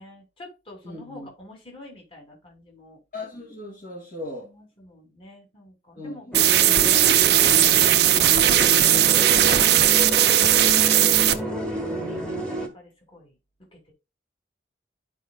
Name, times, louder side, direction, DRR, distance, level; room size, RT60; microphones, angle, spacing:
voice 1, 0.0-3.0 4.4-6.3 10.2-10.6 10.9-13.4 13.7-13.8, left 2 dB, 30° left, 2.9 m, -48 dB
voice 2, 0.8-1.3 3.1-4.5 6.0-6.4, left 2 dB, 45° left, 2.3 m, -37 dB
sound 1, 6.3-12.7, equal, 5° left, 1.5 m, -29 dB
sound 2, 6.3-11.3, right 12 dB, 65° right, 0.7 m, -18 dB
13.0 x 5.1 x 2.3 m
head